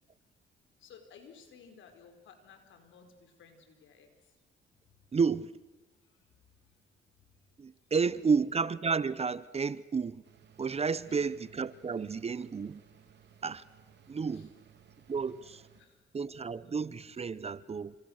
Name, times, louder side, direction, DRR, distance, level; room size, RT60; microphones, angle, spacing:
voice 1, 0.8-4.3 6.0-6.8 8.1-8.2 11.0-11.3 14.3-14.5 15.7-16.0 17.1-17.3, left 6 dB, 75° left, 4.6 m, -57 dB
voice 2, 5.1-5.5 7.6-10.2 10.6-12.8 13.4-13.6 14.1-14.5 15.1-15.6 16.1-18.0, right 5 dB, 30° right, 0.8 m, -31 dB
sound 1, 10.2-15.8, right 8 dB, 60° right, 3.2 m, -60 dB
29.0 x 27.0 x 6.5 m
cardioid pair, 90°, 20 cm